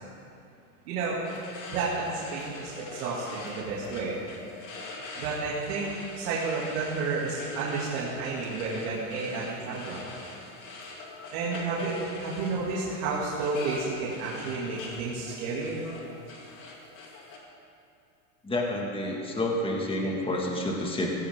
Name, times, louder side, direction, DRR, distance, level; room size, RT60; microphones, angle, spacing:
voice 1, 0.9-1.2 1.7-4.2 5.2-5.9 6.1-10.0 11.3-15.8, right 4 dB, 70° right, -6 dB, 2.8 m, -31 dB
sound 1, 1.2-17.4, left 3 dB, 40° left, 2.7 m, -43 dB
voice 2, 18.4-21.1, left 1 dB, 10° left, -1 dB, 2.0 m, -29 dB
16.0 x 15.5 x 3.7 m, 2.7 s
supercardioid pair, 120°, 46 cm